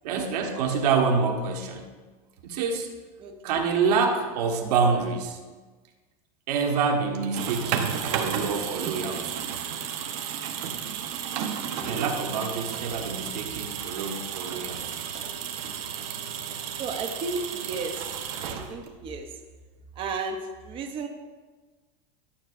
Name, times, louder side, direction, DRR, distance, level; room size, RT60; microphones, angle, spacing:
voice 1, 0.0-1.9 2.4-2.9 3.4-5.4 6.5-9.5 11.8-15.0, right 5 dB, 85° right, 3 dB, 1.2 m, -27 dB
voice 2, 3.2-3.6 7.0-7.2 11.7-12.1 16.8-19.4 20.0-21.1, right 4 dB, 25° right, 4 dB, 0.7 m, -34 dB
sound 1, 7.1-19.1, right 8 dB, 60° right, 0.9 m, -33 dB
11.5 x 7.6 x 2.5 m, 1.3 s
supercardioid pair, 155°, 20 cm